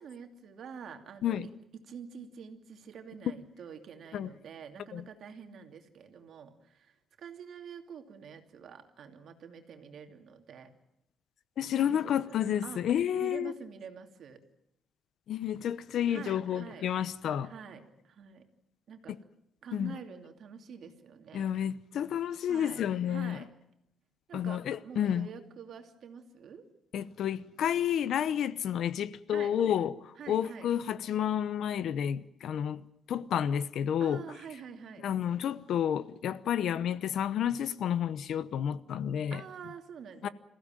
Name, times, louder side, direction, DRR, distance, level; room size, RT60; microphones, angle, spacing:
voice 1, 0.0-1.5 1.8-10.7 11.9-12.4 12.6-12.8 13.2-14.4 16.1-16.9 17.4-18.5 18.9-19.1 19.6-21.5 22.5-23.5 24.3-26.6 29.3-29.6 30.2-30.7 34.0-35.1 39.3-40.3, right 6 dB, 55° right, 2.7 m, -47 dB
voice 2, 11.6-13.5 15.3-17.5 19.7-19.9 21.3-23.4 24.3-25.3 26.9-34.2 35.0-39.4 40.2-40.3, left 9 dB, 65° left, 0.9 m, -30 dB
27.0 x 15.5 x 9.1 m
cardioid pair, 155°, 0 cm